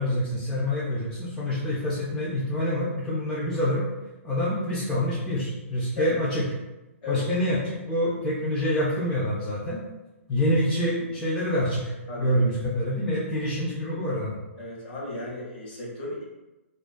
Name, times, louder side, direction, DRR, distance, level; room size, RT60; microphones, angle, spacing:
voice 1, 0.0-3.8 4.2-6.4 7.1-9.8 10.3-14.4, equal, 10° left, -8 dB, 0.3 m, -26 dB
voice 2, 14.6-16.2, left 3 dB, 40° left, -4 dB, 0.9 m, -34 dB
2.3 x 2.2 x 2.4 m, 1.0 s
hypercardioid pair, 150°, 8 cm